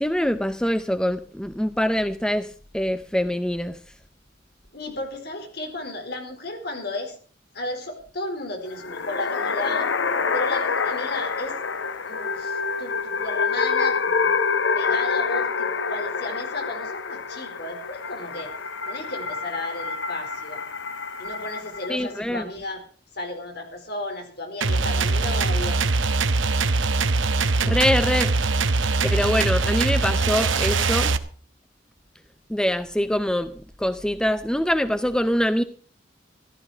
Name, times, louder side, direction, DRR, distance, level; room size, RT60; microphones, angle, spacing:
voice 1, 0.0-2.5 2.7-3.8 21.9-22.4 27.7-28.3 29.0-31.2 32.5-33.5 33.8-35.6, equal, 5° left, 0.6 m, -24 dB
voice 2, 4.7-7.2 7.5-9.9 10.3-11.6 12.1-14.3 14.7-18.5 18.9-20.6 21.2-22.8 23.1-25.8, left 2 dB, 60° left, 4.5 m, -34 dB
sound 1, 8.7-22.1, left 5 dB, 75° left, 1.1 m, -27 dB
sound 2, 24.6-31.2, right 3 dB, 90° right, 1.1 m, -22 dB
14.5 x 13.0 x 5.0 m
head